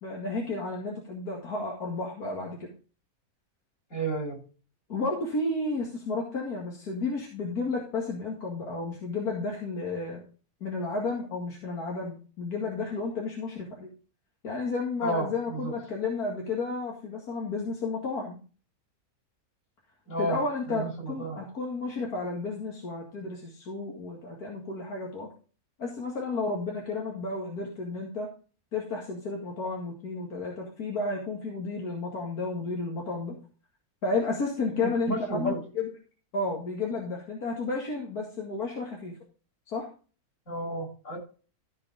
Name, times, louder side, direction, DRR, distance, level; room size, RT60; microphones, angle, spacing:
voice 1, 0.0-2.7 4.9-10.2 10.6-13.9 14.4-18.4 20.2-25.3 25.8-28.3 28.7-33.4 34.0-35.9 36.3-39.1 39.7-39.9, left 3 dB, 85° left, -1 dB, 2.5 m, -32 dB
voice 2, 3.9-4.4 15.0-15.7 20.1-20.4 21.0-21.4 34.8-35.6 40.5-41.2, right 1 dB, 55° left, -3 dB, 7.4 m, -31 dB
14.5 x 5.0 x 5.0 m, 0.37 s
omnidirectional pair, 1.6 m